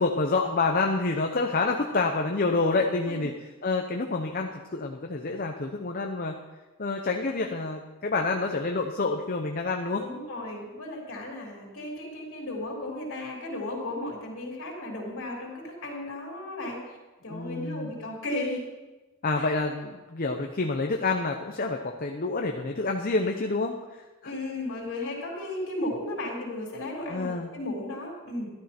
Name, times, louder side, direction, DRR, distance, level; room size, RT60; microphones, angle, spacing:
voice 1, 0.0-3.3 3.6-6.4 6.8-10.0 17.3-17.9 19.2-23.8 27.1-27.5, left 3 dB, 40° left, 3 dB, 0.8 m, -28 dB
voice 2, 10.0-17.0 17.2-18.6 19.4-19.5 24.2-28.5, left 1 dB, 55° left, -3 dB, 3.5 m, -35 dB
12.5 x 12.5 x 4.4 m, 1.1 s
head